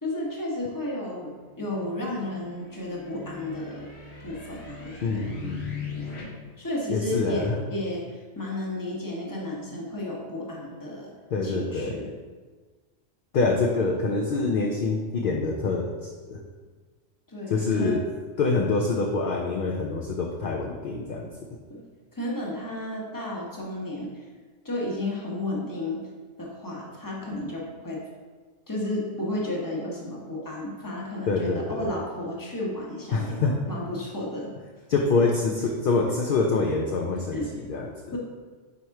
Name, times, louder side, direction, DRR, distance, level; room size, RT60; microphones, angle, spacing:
voice 1, 0.0-3.9 4.2-5.2 6.6-11.1 11.4-12.1 17.3-18.0 21.7-21.8 22.1-24.2 24.6-26.0 26.4-28.0 28.7-34.5 37.3-37.5 38.1-38.2, left 1 dB, 15° left, -3 dB, 1.0 m, -33 dB
sound 1, 1.2-6.2, left 5 dB, 80° left, 1.7 m, -40 dB
voice 2, 5.0-5.7 6.9-7.6 11.3-12.0 13.3-16.4 17.5-18.0 18.4-21.3 31.3-31.9 33.1-33.6 34.9-38.2, left 3 dB, 60° left, 0 dB, 0.6 m, -26 dB
4.8 x 4.3 x 4.6 m, 1.4 s
omnidirectional pair, 1.2 m